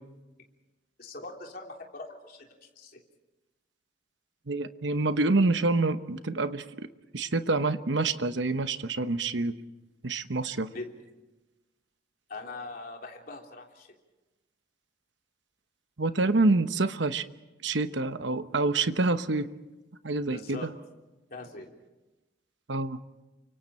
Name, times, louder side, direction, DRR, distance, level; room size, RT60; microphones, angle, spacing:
voice 1, 1.0-2.4 2.7-3.0 10.7-10.9 12.3-13.9 20.3-20.7 21.3-21.7, left 2 dB, 50° left, 1 dB, 3.4 m, -41 dB
voice 2, 4.5-6.9 7.1-9.6 10.0-10.7 16.0-17.2 17.6-19.5 20.0-20.7 22.7-23.0, right 3 dB, 70° right, 10 dB, 1.0 m, -27 dB
30.0 x 25.0 x 4.4 m, 1.1 s
head